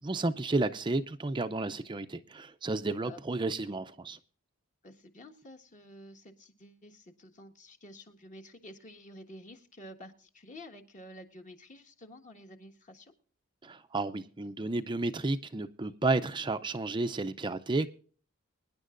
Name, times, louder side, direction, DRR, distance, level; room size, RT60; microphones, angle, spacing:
voice 1, 0.0-4.2 13.6-17.9, right 2 dB, 20° right, 0.5 m, -32 dB
voice 2, 4.8-13.1, left 1 dB, 35° left, 1.5 m, -50 dB
24.0 x 10.5 x 2.5 m
head